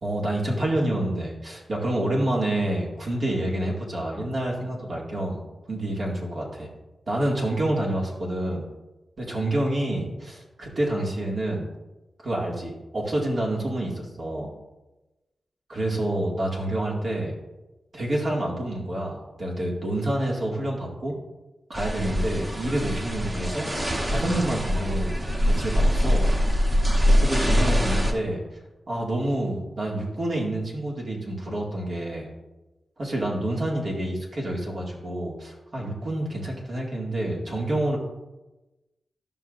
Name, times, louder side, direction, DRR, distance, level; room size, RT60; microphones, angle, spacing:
voice 1, 0.0-5.4 5.7-6.7 7.1-8.6 9.2-11.7 12.2-14.5 15.7-17.3 17.9-21.1 21.7-23.7 24.1-25.2 25.5-26.3 27.2-28.4 28.9-32.3 33.0-38.0, right 1 dB, 60° right, -3 dB, 2.2 m, -28 dB
sound 1, 21.7-28.1, equal, 25° right, 1.1 m, -23 dB
12.0 x 5.6 x 2.6 m, 1.1 s
cardioid pair, 60°, 0 cm